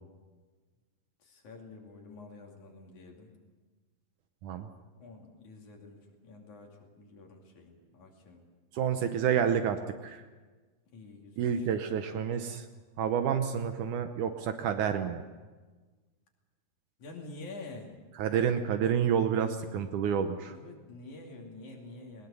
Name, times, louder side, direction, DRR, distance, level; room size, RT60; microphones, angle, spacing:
voice 1, 1.2-3.3 5.0-8.4 10.9-11.7 17.0-17.9 20.5-22.3, left 3 dB, 65° left, 0 dB, 4.1 m, -48 dB
voice 2, 8.7-10.2 11.4-12.7 13.0-15.2 18.2-20.6, right 8 dB, 75° right, 8 dB, 2.3 m, -29 dB
21.0 x 20.0 x 7.0 m, 1.3 s
omnidirectional pair, 3.8 m